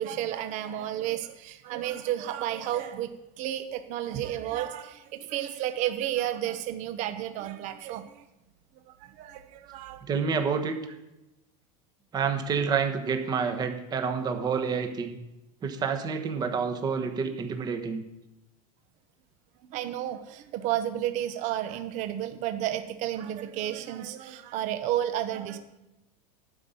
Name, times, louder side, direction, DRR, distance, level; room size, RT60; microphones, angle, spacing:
voice 1, 0.0-8.2 8.9-10.0 19.6-25.6, right 12 dB, 40° right, 8 dB, 0.9 m, -32 dB
voice 2, 10.1-10.8 12.1-15.2 15.6-18.0, right 6 dB, 20° right, 6 dB, 1.2 m, -28 dB
12.0 x 5.5 x 8.9 m, 0.96 s
supercardioid pair, 155°, 19 cm